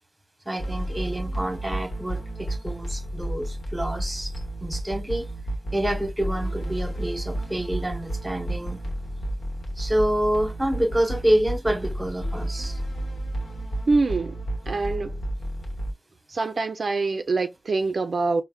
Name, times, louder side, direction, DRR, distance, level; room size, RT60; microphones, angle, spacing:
voice 1, 0.5-4.3 4.6-5.3 5.7-8.8 9.8-12.8, right 1 dB, 15° right, 1.0 m, -27 dB
sound 1, 0.6-15.9, right 1 dB, 90° left, 1.0 m, -31 dB
voice 2, 13.9-14.4 14.7-15.2 16.3-18.4, right 3 dB, 65° right, 0.4 m, -25 dB
4.4 x 2.1 x 2.2 m
wide cardioid pair, 75°, 0 cm